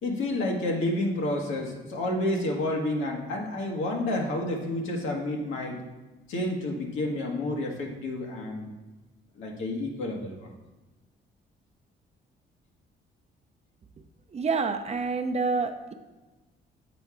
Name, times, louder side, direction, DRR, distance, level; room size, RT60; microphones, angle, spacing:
voice 1, 0.0-5.8 6.3-8.7 9.3-10.5, left 1 dB, 85° left, 0 dB, 1.3 m, -30 dB
voice 2, 14.3-15.9, right 4 dB, 35° right, 6 dB, 0.6 m, -28 dB
7.7 x 4.6 x 3.7 m, 1.1 s
cardioid pair, 90°, 20 cm